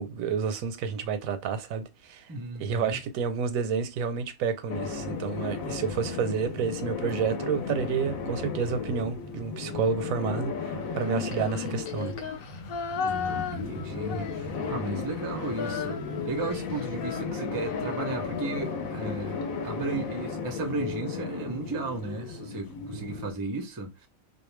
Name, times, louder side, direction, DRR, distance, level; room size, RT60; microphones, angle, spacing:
voice 1, 0.0-2.2 2.6-12.1, right 6 dB, 85° right, 1.0 m, -30 dB
voice 2, 2.3-3.0 13.0-24.1, right 3 dB, 35° right, 0.3 m, -35 dB
sound 1, 4.7-23.3, left 5 dB, 80° left, 1.1 m, -35 dB
Female singing, 11.0-14.9 15.2-19.4, left 7 dB, 65° left, 0.5 m, -36 dB
2.5 x 2.1 x 3.1 m
omnidirectional pair, 1.4 m